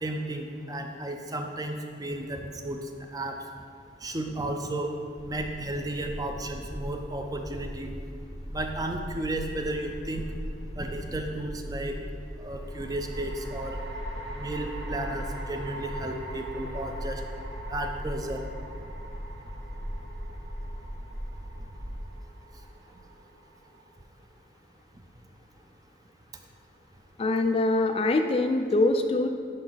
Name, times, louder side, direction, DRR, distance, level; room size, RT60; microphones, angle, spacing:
voice 1, 0.0-2.8 3.1-3.4 4.0-4.9 5.2-7.9 8.5-10.3 10.7-12.0 12.4-13.8 14.4-17.2 17.7-18.4, right 1 dB, 20° right, 4 dB, 0.5 m, -33 dB
sound 1, 5.2-22.0, equal, 35° right, 0.9 m, -39 dB
sound 2, 9.5-10.2 12.6-24.0, right 2 dB, 65° right, 1.2 m, -44 dB
voice 2, 27.2-29.3, left 2 dB, 35° left, 6 dB, 0.4 m, -24 dB
10.5 x 4.8 x 4.0 m, 2.3 s
head